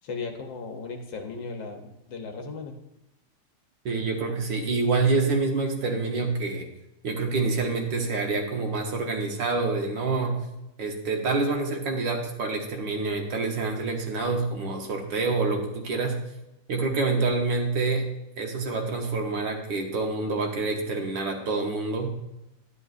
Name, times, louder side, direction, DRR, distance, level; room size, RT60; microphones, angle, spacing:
voice 1, 0.0-2.7, left 4 dB, 65° left, 4 dB, 1.5 m, -36 dB
voice 2, 3.8-6.7 7.0-10.4 10.8-16.2 16.7-18.1 18.4-22.1, right 3 dB, 60° right, 2 dB, 1.5 m, -27 dB
10.5 x 9.8 x 2.5 m, 0.90 s
omnidirectional pair, 2.4 m